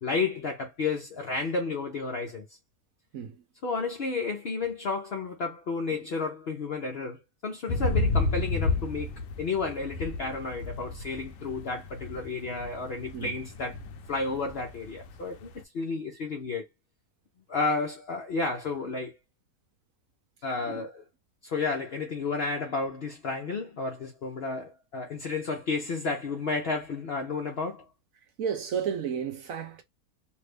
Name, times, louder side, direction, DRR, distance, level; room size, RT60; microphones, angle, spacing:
voice 1, 0.0-2.5 3.6-13.8 14.1-16.7 17.5-19.2 20.4-21.0 21.4-27.8, left 4 dB, 55° left, 0.6 m, -32 dB
voice 2, 3.1-3.4 5.9-6.0 13.1-13.4 20.6-20.8 28.4-29.8, right 7 dB, 65° right, 1.0 m, -33 dB
sound 1, 7.7-15.6, left 3 dB, 80° left, 1.3 m, -32 dB
3.2 x 2.5 x 3.2 m
omnidirectional pair, 1.9 m